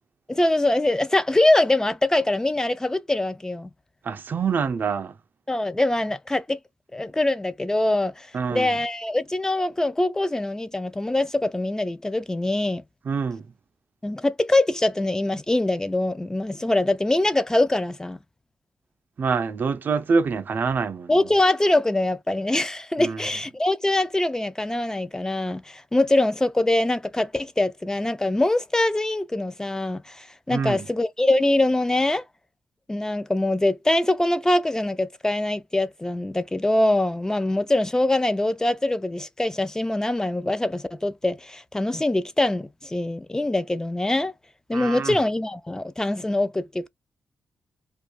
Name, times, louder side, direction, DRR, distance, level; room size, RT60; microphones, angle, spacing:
voice 1, 0.3-3.7 5.5-6.6 6.9-12.8 14.0-18.2 21.1-32.2 32.9-44.3 44.7-46.9, left 1 dB, 15° left, 0.4 m, -23 dB
voice 2, 4.0-5.1 8.3-8.7 13.0-13.5 19.2-21.2 23.0-23.2 30.5-30.9 44.7-45.2, right 5 dB, 55° right, 0.4 m, -25 dB
2.5 x 2.3 x 2.3 m
cardioid pair, 60°, 4 cm